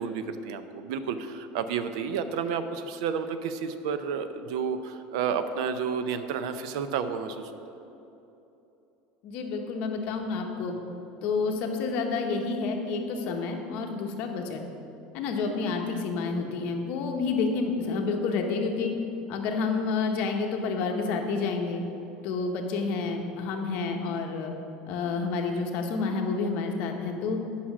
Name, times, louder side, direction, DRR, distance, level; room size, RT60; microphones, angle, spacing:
voice 1, 0.0-7.5, right 6 dB, 75° right, 10 dB, 0.6 m, -31 dB
voice 2, 9.2-10.7 11.2-14.6 15.1-18.9 19.3-21.8 22.2-24.5 24.9-27.4, left 4 dB, 50° left, 3 dB, 1.0 m, -29 dB
8.6 x 5.6 x 6.1 m, 2.9 s
cardioid pair, 170°, 3 cm